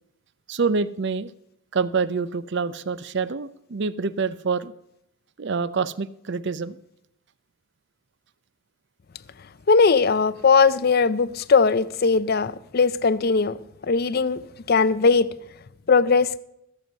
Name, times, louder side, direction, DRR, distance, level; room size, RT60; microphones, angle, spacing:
voice 1, 0.5-1.3 1.7-4.7 5.4-6.8, right 5 dB, 55° right, 0.5 m, -26 dB
voice 2, 9.7-13.6 13.9-14.4 14.7-15.3 15.9-16.4, left 4 dB, 45° left, 0.5 m, -19 dB
15.0 x 7.7 x 5.3 m
head